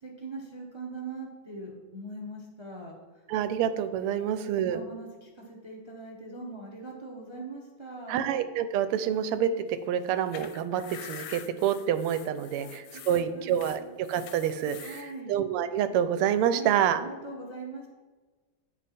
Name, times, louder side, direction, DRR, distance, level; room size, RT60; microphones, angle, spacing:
voice 1, 0.0-3.0 4.6-8.2 12.6-13.9 14.8-15.3 16.5-17.9, right 3 dB, 50° right, -1 dB, 0.3 m, -42 dB
voice 2, 3.3-4.8 8.1-17.0, right 9 dB, 90° right, 11 dB, 1.5 m, -27 dB
sound 1, 10.0-15.1, left 10 dB, 75° left, 1.2 m, -46 dB
9.1 x 5.0 x 4.2 m, 1.3 s
omnidirectional pair, 2.4 m